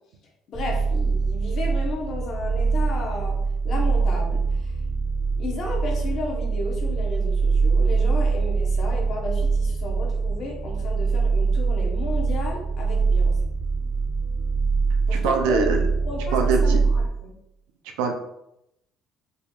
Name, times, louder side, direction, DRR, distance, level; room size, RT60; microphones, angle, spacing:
voice 1, 0.5-3.4 3.6-4.4 5.4-13.3 15.1-15.7 16.0-17.3, left 2 dB, 60° left, 0 dB, 1.0 m, -33 dB
sound 1, 0.5-17.1, right 4 dB, 30° right, 0.5 m, -23 dB
voice 2, 15.1-15.8 16.3-16.8 18.0-18.1, right 5 dB, 85° right, 3 dB, 0.5 m, -23 dB
4.0 x 2.8 x 2.4 m, 0.83 s
supercardioid pair, 80°, 0 cm